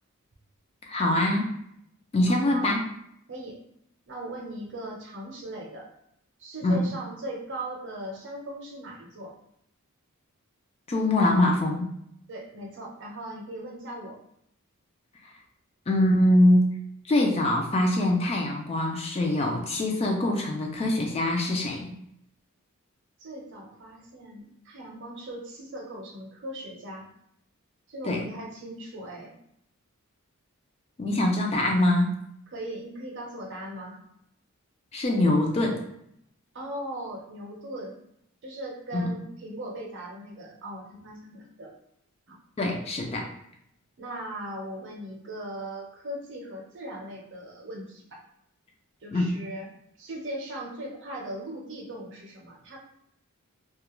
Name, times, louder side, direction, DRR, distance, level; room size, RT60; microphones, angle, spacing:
voice 1, 0.9-1.5 2.1-2.9 6.6-6.8 10.9-11.9 15.9-16.7 17.1-22.0 28.1-28.3 31.0-32.1 34.9-35.8 38.9-39.1 42.6-43.3 49.1-49.2, left 1 dB, 25° left, 1 dB, 0.3 m, -23 dB
voice 2, 2.3-2.8 3.3-3.6 4.1-5.9 6.4-9.3 12.3-14.2 23.2-27.1 27.9-29.3 32.5-34.0 36.5-38.0 38.4-41.7 42.3-42.4 44.0-48.0 49.0-49.7 50.0-52.8, right 1 dB, 55° right, -1 dB, 0.6 m, -39 dB
2.3 x 2.1 x 2.9 m, 0.74 s
head